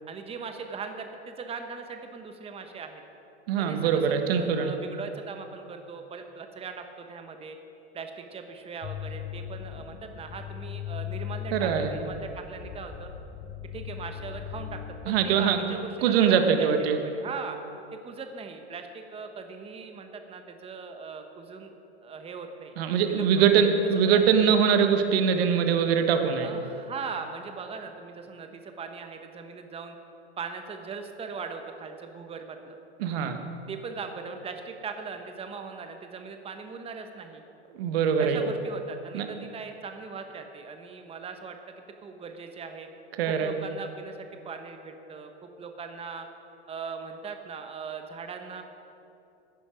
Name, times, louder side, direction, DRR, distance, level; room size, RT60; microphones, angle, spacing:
voice 1, 0.1-3.0 3.6-7.6 7.9-13.1 13.7-14.8 15.0-17.6 17.9-21.7 22.0-22.8 23.1-23.7 24.0-24.2 26.4-30.0 30.4-32.8 33.7-37.4 38.2-42.9 43.3-46.3 46.7-48.6, right 5 dB, 15° right, 6 dB, 1.0 m, -39 dB
voice 2, 3.5-4.7 11.5-12.0 15.1-15.6 16.0-17.0 22.8-26.5 33.0-33.4 37.7-38.4 39.1-39.2 43.2-43.5, right 7 dB, 60° right, 6 dB, 1.5 m, -23 dB
sound 1, 8.8-15.1, left 10 dB, 30° left, 0.8 m, -38 dB
15.0 x 9.9 x 5.0 m, 2.8 s
hypercardioid pair, 105°, 34 cm